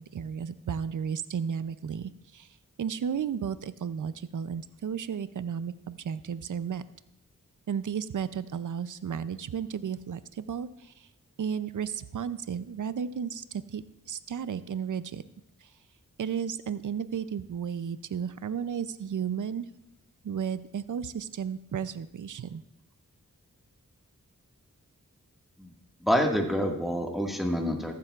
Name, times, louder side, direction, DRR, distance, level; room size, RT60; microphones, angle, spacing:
voice 1, 0.0-2.5 2.8-6.8 7.7-11.1 11.4-15.2 15.6-15.7 16.2-19.7 20.2-22.6, right 7 dB, 65° right, 14 dB, 0.6 m, -33 dB
voice 2, 26.0-27.9, equal, ahead, 1 dB, 1.8 m, -27 dB
15.0 x 12.5 x 2.4 m, 0.81 s
cardioid pair, 50°, 33 cm